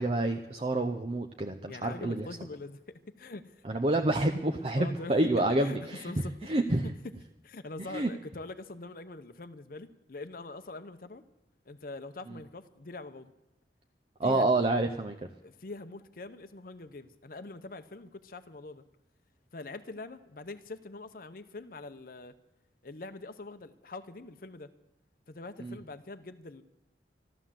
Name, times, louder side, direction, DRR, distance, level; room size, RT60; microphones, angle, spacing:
voice 1, 0.0-2.3 3.6-6.1 6.5-6.9 7.9-8.1 14.2-15.2 25.6-25.8, right 2 dB, 35° right, 5 dB, 0.7 m, -28 dB
voice 2, 1.7-3.6 4.7-5.8 6.0-6.5 7.4-11.2 11.7-13.3 14.2-14.5 15.4-18.8 19.5-22.4 22.8-24.7 25.3-26.6, left 2 dB, 55° left, 10 dB, 0.7 m, -44 dB
13.5 x 13.0 x 7.5 m, 0.98 s
head